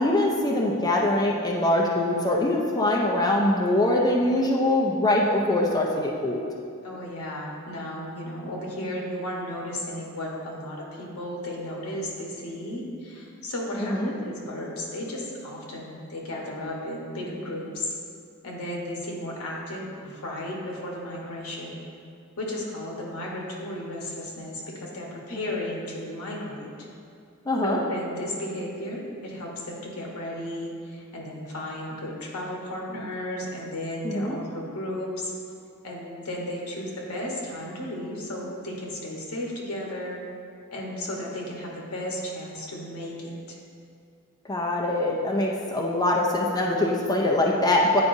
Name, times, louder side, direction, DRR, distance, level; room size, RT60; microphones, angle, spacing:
voice 1, 0.0-6.4 13.8-14.1 27.5-27.8 34.0-34.4 44.5-48.0, left 1 dB, 15° left, -2 dB, 0.5 m, -23 dB
voice 2, 6.8-17.9 18.4-21.8 22.4-26.7 27.6-35.3 35.8-40.2 40.7-43.6, left 1 dB, 85° left, -2 dB, 1.2 m, -34 dB
9.5 x 4.7 x 2.6 m, 2.3 s
head